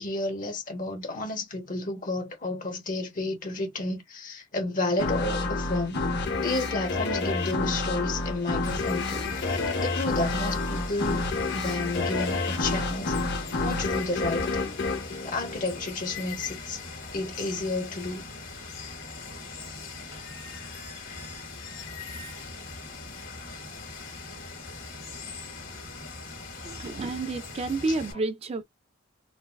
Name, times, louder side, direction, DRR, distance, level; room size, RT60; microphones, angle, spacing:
voice 1, 0.0-6.0 6.4-11.3 11.5-13.1 13.6-14.8 15.2-16.8 17.1-18.2, left 2 dB, 45° left, 1.2 m, -31 dB
sound 1, 5.0-16.2, left 3 dB, 60° left, 0.8 m, -29 dB
Water, 8.6-28.1, left 4 dB, 85° left, 1.8 m, -41 dB
voice 2, 26.6-28.6, right 3 dB, 30° right, 0.3 m, -30 dB
4.0 x 2.3 x 2.3 m
head